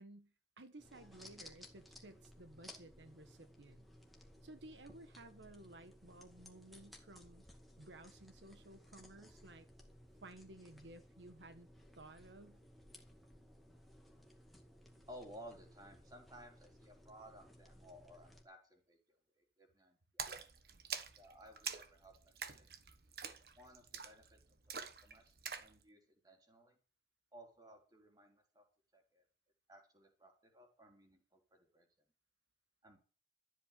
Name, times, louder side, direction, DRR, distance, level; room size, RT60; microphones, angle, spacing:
voice 1, 0.0-3.9 4.4-7.4 7.8-9.7 10.2-11.7 11.9-12.6, right 2 dB, 90° right, 1.4 m, -56 dB
sound 1, 0.8-18.4, left 1 dB, ahead, 2.1 m, -60 dB
voice 2, 15.1-19.0 19.4-20.3 21.2-22.7 23.6-24.4 24.7-26.8 27.3-28.6 28.9-29.2 29.7-31.9 32.8-33.0, equal, 20° right, 3.8 m, -58 dB
Splash splatter, 20.2-25.7, right 7 dB, 55° right, 1.3 m, -46 dB
13.5 x 8.1 x 7.6 m
head